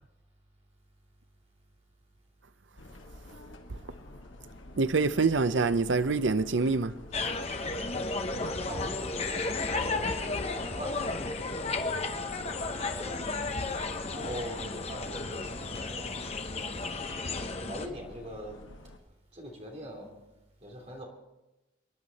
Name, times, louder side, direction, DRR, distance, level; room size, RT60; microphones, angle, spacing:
sound 1, 2.8-19.0, left 1 dB, 75° left, 1.5 m, -49 dB
voice 1, 4.8-7.0, right 4 dB, 65° right, 0.7 m, -26 dB
sound 2, 7.1-17.9, left 3 dB, 30° left, 0.8 m, -33 dB
voice 2, 8.6-9.0 9.7-12.1 12.6-13.6 14.1-16.2 17.4-18.6 19.3-20.2 20.6-21.0, equal, 30° right, 3.2 m, -42 dB
26.0 x 11.0 x 4.2 m
head